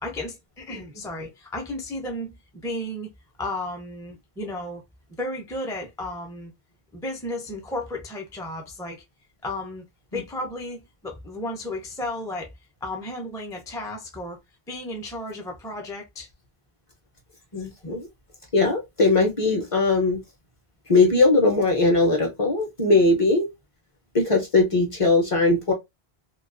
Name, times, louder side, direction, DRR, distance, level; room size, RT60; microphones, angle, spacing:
voice 1, 0.0-2.4 2.6-3.1 3.4-4.8 5.2-6.5 6.9-9.0 9.4-9.8 10.1-12.5 12.8-14.4 14.7-16.3 17.6-17.7 22.9-23.1, left 1 dB, 5° left, 0.3 m, -33 dB
voice 2, 17.5-18.1 18.5-20.2 20.9-23.5 24.1-25.7, left 3 dB, 40° left, 0.6 m, -20 dB
2.3 x 2.3 x 2.4 m
omnidirectional pair, 1.0 m